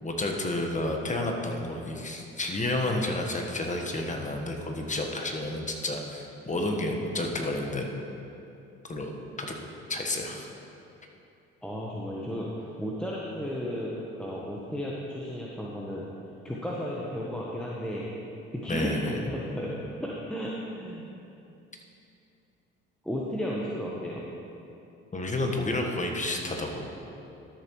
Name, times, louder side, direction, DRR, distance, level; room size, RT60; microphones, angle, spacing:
voice 1, 0.0-7.9 8.9-9.1 9.4-9.5 9.9-10.5 18.7-19.3 25.1-26.9, left 2 dB, 25° left, 2 dB, 1.3 m, -30 dB
voice 2, 11.6-16.1 16.4-18.1 18.5-21.1 23.0-24.3, equal, 5° left, -5 dB, 1.1 m, -34 dB
13.0 x 6.7 x 3.1 m, 2.8 s
hypercardioid pair, 60°, 30 cm